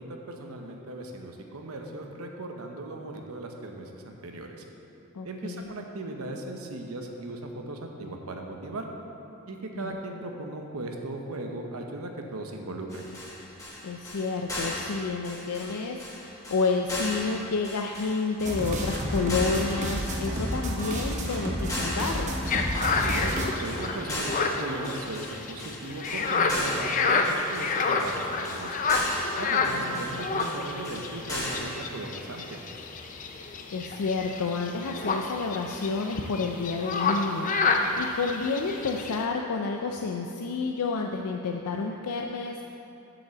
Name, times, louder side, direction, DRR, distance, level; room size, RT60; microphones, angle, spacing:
voice 1, 0.0-4.6 5.2-8.9 9.5-13.1 22.8-28.9 29.4-32.6, right 2 dB, 75° right, 3 dB, 0.9 m, -37 dB
voice 2, 5.1-5.7 9.8-10.0 13.8-22.4 29.7-30.2 33.4-42.6, left 4 dB, 90° left, 2 dB, 0.5 m, -30 dB
sound 1, 12.9-31.8, left 1 dB, 15° left, 1.9 m, -37 dB
sound 2, 18.4-23.5, equal, 35° right, 0.9 m, -30 dB
sound 3, 22.5-39.2, left 4 dB, 35° left, 0.5 m, -29 dB
7.3 x 5.4 x 7.0 m, 2.9 s
head